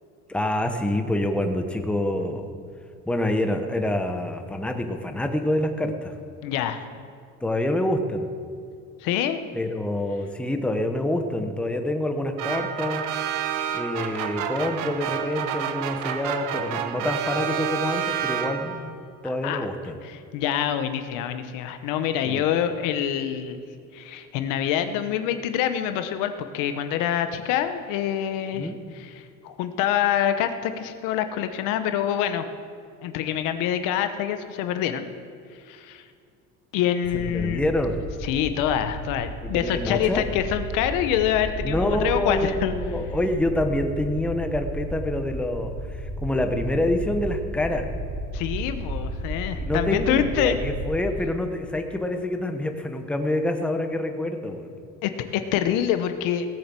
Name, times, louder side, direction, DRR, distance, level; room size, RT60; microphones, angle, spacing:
voice 1, 0.3-2.5 3.1-6.1 7.4-8.3 9.5-13.0 13.7-18.9 19.2-20.0 22.2-22.4 28.5-28.8 37.1-38.0 39.4-40.3 41.6-47.9 49.6-54.7, left 1 dB, 5° left, 5 dB, 0.9 m, -27 dB
voice 2, 6.4-6.9 9.0-9.4 19.2-19.7 20.0-23.6 23.9-32.5 33.0-35.1 35.7-36.0 36.7-37.7 38.2-42.7 48.3-50.6 55.0-56.5, left 10 dB, 75° left, 9 dB, 1.0 m, -26 dB
sound 1, 12.4-18.9, right 9 dB, 75° right, 1.0 m, -29 dB
sound 2, 37.0-50.9, right 1 dB, 60° right, 3.4 m, -33 dB
17.0 x 7.4 x 7.6 m, 2.2 s
cardioid pair, 135°, 32 cm